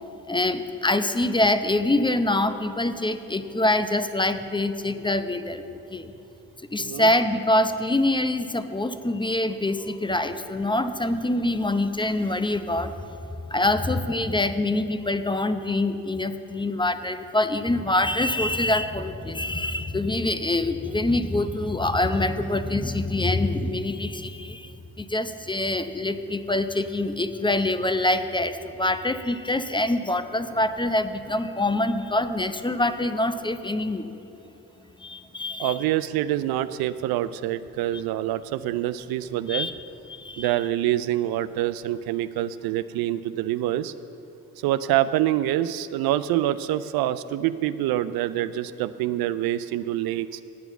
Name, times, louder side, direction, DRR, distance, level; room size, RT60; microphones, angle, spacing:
voice 1, 0.3-5.6 5.9-6.1 6.7-13.2 13.5-24.7 25.0-34.1 35.0-35.8 39.5-39.7 40.1-40.5, left 2 dB, 10° left, 10 dB, 0.7 m, -25 dB
voice 2, 6.8-7.1 35.6-39.7 40.4-43.9 44.6-50.4, right 13 dB, 65° right, 14 dB, 0.5 m, -26 dB
9.5 x 8.9 x 7.0 m, 2.9 s
hypercardioid pair, 45°, 39 cm